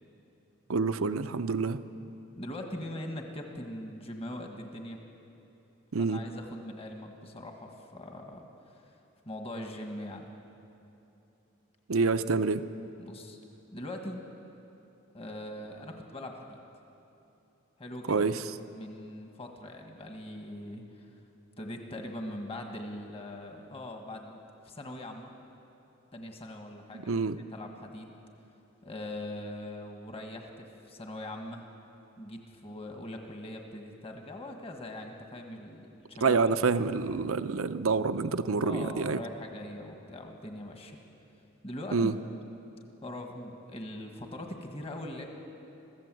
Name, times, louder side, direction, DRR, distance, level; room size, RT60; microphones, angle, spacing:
voice 1, 0.7-1.8 5.9-6.2 11.9-12.6 18.1-18.4 26.9-27.4 36.2-39.2 41.9-42.2, right 4 dB, 80° right, 11 dB, 0.7 m, -27 dB
voice 2, 2.4-5.0 6.0-8.5 8.8-8.9 9.2-10.3 13.0-13.4 13.7-14.2 15.1-16.6 17.8-18.3 18.7-21.1 21.6-24.4 24.6-25.3 26.1-27.1 27.5-28.1 28.8-31.6 32.2-36.4 38.6-41.0 41.6-42.1 43.0-45.3, left 1 dB, 30° left, 3 dB, 1.6 m, -41 dB
22.5 x 15.0 x 7.7 m, 2.8 s
head